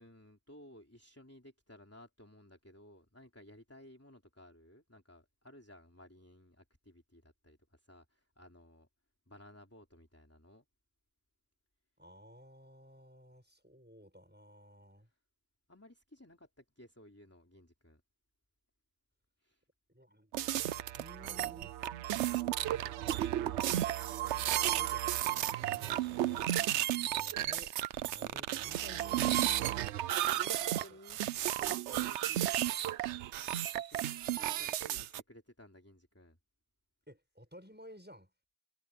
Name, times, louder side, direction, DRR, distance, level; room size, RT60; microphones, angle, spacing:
voice 1, 0.0-8.9 9.3-10.6 15.0-15.1 15.7-18.0 19.4-19.6 26.9-27.4 30.3-31.2 31.5-32.6 33.7-36.4, left 1 dB, 10° left, 3.2 m, -57 dB
voice 2, 12.0-15.1 19.9-21.8 22.5-27.7 28.0-29.6 30.3-30.5 30.9-31.0 33.7-34.0 37.1-38.3, equal, 5° right, 6.7 m, -56 dB
sound 1, 20.3-35.2, right 12 dB, 65° right, 0.8 m, -33 dB
omnidirectional pair, 1.5 m